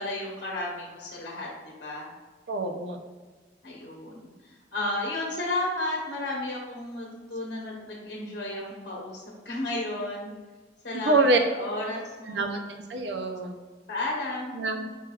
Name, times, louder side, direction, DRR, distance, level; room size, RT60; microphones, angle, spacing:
voice 1, 0.0-2.1 3.6-10.3 10.8-11.2 11.5-12.6 13.9-14.5, left 2 dB, 65° left, -3 dB, 0.9 m, -33 dB
voice 2, 2.5-3.0 10.9-11.4 12.3-13.5 14.5-14.9, right 2 dB, 70° right, 5 dB, 0.6 m, -26 dB
4.5 x 4.5 x 2.4 m, 1.4 s
head